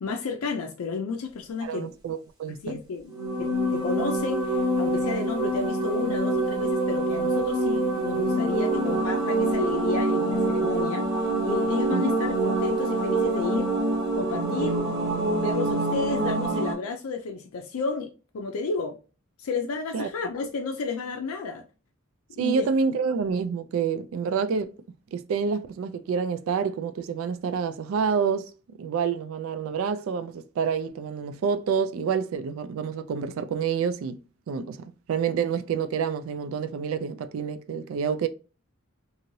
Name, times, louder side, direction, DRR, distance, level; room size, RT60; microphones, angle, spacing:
voice 1, 0.0-1.9 2.6-13.7 14.2-14.8 15.3-19.0 19.4-21.6 22.4-22.7, left 4 dB, 90° left, 0.4 m, -32 dB
voice 2, 1.6-2.8 11.9-12.1 19.9-20.1 22.4-24.7 25.1-28.5 28.8-34.2 34.5-38.3, right 6 dB, 75° right, 0.3 m, -28 dB
sound 1, 3.1-16.7, right 2 dB, 15° right, 0.8 m, -25 dB
2.6 x 2.6 x 3.0 m
head